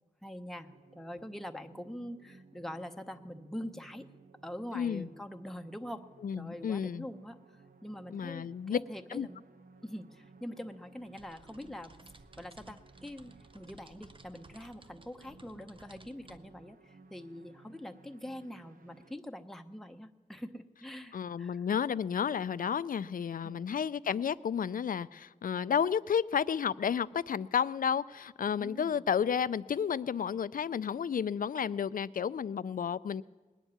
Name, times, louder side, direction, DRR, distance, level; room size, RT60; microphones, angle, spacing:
voice 1, 0.2-4.1 4.4-6.0 6.3-9.4 9.8-11.9 12.4-21.6 23.4-23.6 28.6-29.1, equal, ahead, 6 dB, 0.7 m, -44 dB
sound 1, 0.6-19.1, right 4 dB, 80° right, 0.8 m, -58 dB
voice 2, 4.7-5.1 6.2-7.1 8.1-8.8 9.1-9.3 21.1-33.2, left 7 dB, 80° left, 17 dB, 0.4 m, -32 dB
sound 2, 9.8-9.9 10.1-16.4, right 2 dB, 40° right, 0.9 m, -58 dB
20.0 x 7.2 x 9.5 m, 1.3 s
wide cardioid pair, 80°, 14 cm